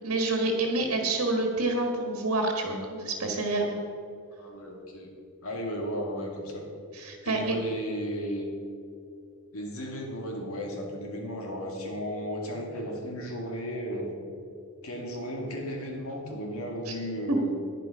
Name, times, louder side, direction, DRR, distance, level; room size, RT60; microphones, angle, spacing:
voice 1, 0.0-3.8 6.9-7.6 16.9-17.0 17.3-17.4, right 2 dB, 75° right, 2 dB, 1.6 m, -28 dB
voice 2, 4.4-5.1 5.4-6.6 7.2-8.5 9.5-14.2 14.8-17.5, equal, 70° left, 1 dB, 2.3 m, -35 dB
10.5 x 10.5 x 5.5 m, 2.5 s
head